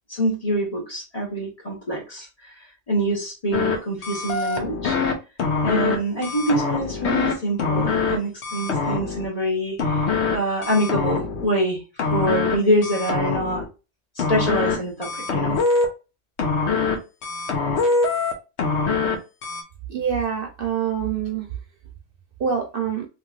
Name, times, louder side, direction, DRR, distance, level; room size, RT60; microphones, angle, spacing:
voice 1, 0.1-5.0 5.6-10.0 10.3-13.6 14.2-15.6, right 1 dB, 35° left, -2 dB, 1.1 m, -25 dB
sound 1, 3.5-3.8 4.0-5.1 5.4-6.0 6.2-7.3 7.6-8.2 8.4-9.3 9.8-10.4 10.6-11.4 12.0-12.5 12.8-13.6 14.2-14.7 15.0-15.8 16.4-16.9 17.2-18.3 18.6-19.1 19.4-19.6, left 4 dB, 65° left, 1.1 m, -23 dB
voice 2, 19.9-21.5 22.4-23.0, right 7 dB, 50° right, 2 dB, 0.9 m, -25 dB
3.1 x 3.0 x 2.4 m, 0.29 s
omnidirectional pair, 1.3 m